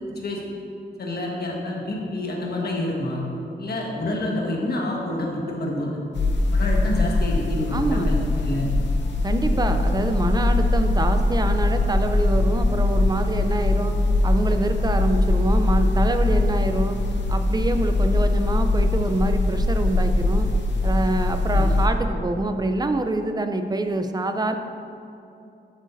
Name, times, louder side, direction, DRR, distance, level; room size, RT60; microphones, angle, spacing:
voice 1, 1.0-3.2 3.6-6.0 6.5-8.7 21.5-21.6, left 1 dB, 60° left, -2 dB, 1.4 m, -28 dB
sound 1, 6.1-21.9, left 2 dB, 80° left, 0.9 m, -22 dB
voice 2, 7.7-8.1 9.2-13.9 14.2-17.0 17.3-20.5 20.8-24.5, right 2 dB, 20° right, 7 dB, 0.5 m, -25 dB
11.5 x 7.9 x 2.6 m, 2.6 s
wide cardioid pair, 150°, 18 cm